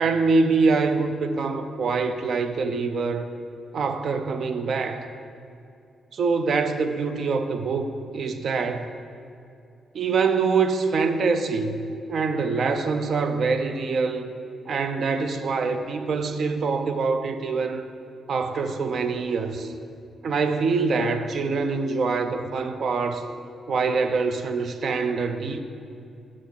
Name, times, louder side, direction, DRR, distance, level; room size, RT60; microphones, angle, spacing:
voice 1, 0.0-3.3 3.7-5.1 6.1-8.9 9.9-11.8 12.1-14.3 14.7-17.9 18.3-19.7 20.2-23.2 23.7-25.6, right 4 dB, 50° right, 8 dB, 0.4 m, -24 dB
6.3 x 5.8 x 5.7 m, 2.5 s
wide cardioid pair, 150°, 0 cm